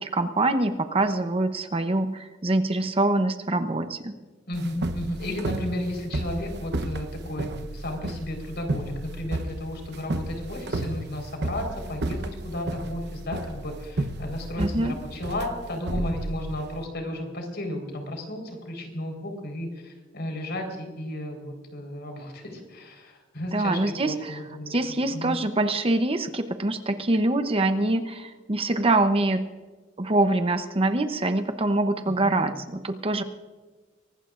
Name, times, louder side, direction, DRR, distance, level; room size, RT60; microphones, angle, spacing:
voice 1, 0.0-4.1 14.6-15.0 23.5-24.4 24.7-29.4 30.0-33.2, right 2 dB, 30° right, 8 dB, 0.8 m, -24 dB
voice 2, 4.5-24.8 25.1-25.4 32.1-32.5, left 1 dB, 60° left, 3 dB, 4.3 m, -33 dB
sound 1, 4.5-16.8, right 2 dB, 60° right, 0.9 m, -32 dB
23.5 x 19.0 x 2.5 m, 1.3 s
head